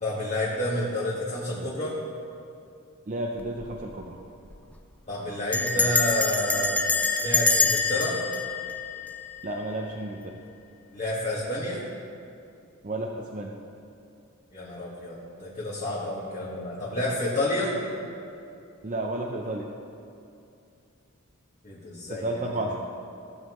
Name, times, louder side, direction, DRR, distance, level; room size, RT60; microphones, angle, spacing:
voice 1, 0.0-2.0 5.1-6.8 7.1-8.2 10.9-11.8 14.5-17.7 21.6-22.7, left 1 dB, 30° left, -8 dB, 1.5 m, -30 dB
voice 2, 3.1-4.2 5.8-5.9 9.4-10.4 12.8-13.5 18.8-19.7 22.1-22.8, right 2 dB, 40° right, 0 dB, 0.6 m, -32 dB
Bell, 3.4-3.8 4.0-4.1 4.4-4.7 5.5-9.6, left 3 dB, 5° left, 0.4 m, -26 dB
16.5 x 7.4 x 3.1 m, 2.6 s
head